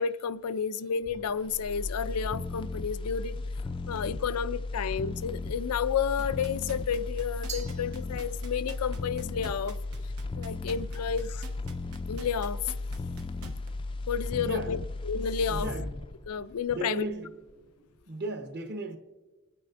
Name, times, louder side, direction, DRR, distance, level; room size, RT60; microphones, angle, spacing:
voice 1, 0.0-3.4 3.9-9.8 10.3-11.4 12.1-12.7 14.1-15.7 16.3-17.1, left 7 dB, 85° left, 0.4 m, -31 dB
sound 1, 1.1-17.1 17.5-17.6, left 3 dB, 20° left, 0.4 m, -36 dB
sound 2, 6.2-13.7 14.1-14.2, right 3 dB, 85° right, 1.1 m, -47 dB
Glass, 7.5-8.7, right 5 dB, 30° right, 0.6 m, -44 dB
voice 2, 14.4-14.8 15.5-15.9 16.7-17.3 18.1-19.0, right 2 dB, 45° right, 1.1 m, -35 dB
28.0 x 9.4 x 2.6 m
head